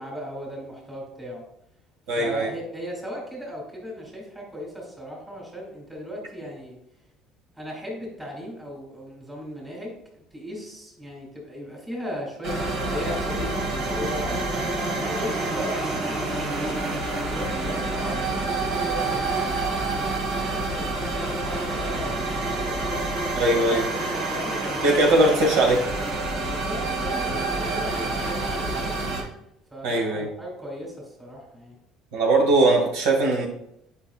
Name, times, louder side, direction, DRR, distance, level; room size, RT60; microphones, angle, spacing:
voice 1, 0.0-1.4 2.2-6.8 7.6-9.9 10.3-14.5 15.0-19.5 19.8-23.1 23.6-25.3 26.5-28.9 29.7-31.8, equal, 10° right, -2 dB, 2.4 m, -37 dB
voice 2, 2.1-2.5 23.3-23.8 24.8-25.8 29.8-30.3 32.1-33.5, right 2 dB, 85° right, 0 dB, 1.7 m, -20 dB
sound 1, 12.4-29.2, right 2 dB, 70° right, 2.2 m, -28 dB
8.2 x 5.3 x 2.4 m, 0.77 s
cardioid pair, 130°, 0 cm